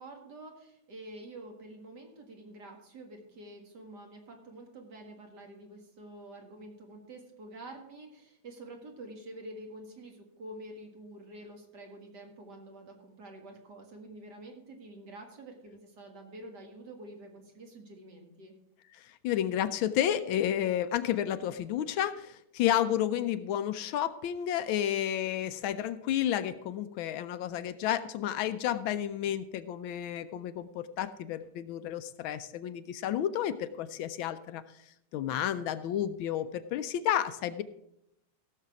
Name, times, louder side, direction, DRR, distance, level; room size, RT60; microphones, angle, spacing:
voice 1, 0.0-18.5, right 1 dB, 55° right, 2 dB, 2.3 m, -48 dB
voice 2, 18.9-34.6 35.1-37.6, left 11 dB, 80° left, 12 dB, 1.4 m, -31 dB
16.0 x 6.7 x 4.8 m, 0.81 s
omnidirectional pair, 2.3 m